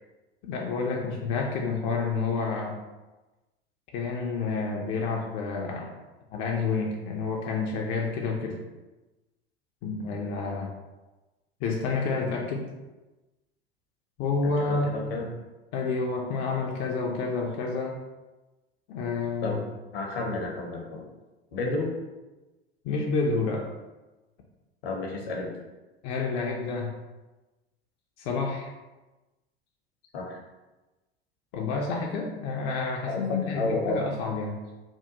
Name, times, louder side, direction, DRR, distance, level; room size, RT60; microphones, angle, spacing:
voice 1, 0.4-2.8 3.9-5.9 6.3-8.6 9.8-10.7 11.6-12.6 14.2-14.9 15.7-18.0 18.9-19.6 22.8-23.7 26.0-26.9 28.2-28.7 31.5-34.6, left 4 dB, 40° left, -1 dB, 0.4 m, -29 dB
voice 2, 14.4-15.3 19.4-19.6 19.9-21.0 21.5-21.9 24.8-25.5 30.1-30.4 33.1-33.2 33.5-34.0, left 2 dB, 60° left, 0 dB, 0.8 m, -31 dB
3.4 x 2.2 x 2.7 m, 1.1 s
figure-of-eight pair, 75°, 32 cm